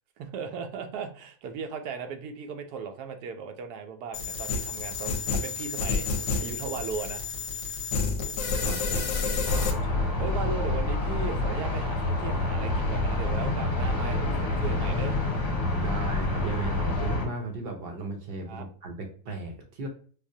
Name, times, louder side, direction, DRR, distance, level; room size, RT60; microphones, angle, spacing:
voice 1, 0.2-7.2 9.8-15.2 18.5-18.7, right 5 dB, 85° right, 6 dB, 1.1 m, -37 dB
sound 1, 4.1-9.7, left 4 dB, 60° left, 0.9 m, -29 dB
voice 2, 8.5-9.2 15.7-19.9, right 3 dB, 55° right, 3 dB, 0.6 m, -35 dB
sound 2, 9.4-17.3, left 2 dB, 30° left, 1.0 m, -27 dB
4.8 x 2.0 x 2.6 m, 0.44 s
omnidirectional pair, 1.6 m